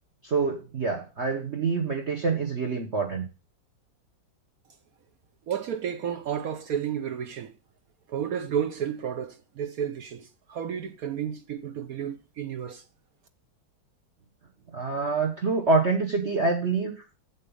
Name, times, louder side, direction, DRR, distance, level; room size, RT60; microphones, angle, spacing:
voice 1, 0.2-3.2 14.7-16.9, right 4 dB, 40° right, 1.3 m, -26 dB
voice 2, 5.5-7.5 8.1-12.8, right 8 dB, 65° right, 0.9 m, -32 dB
8.2 x 7.4 x 5.3 m
omnidirectional pair, 2.0 m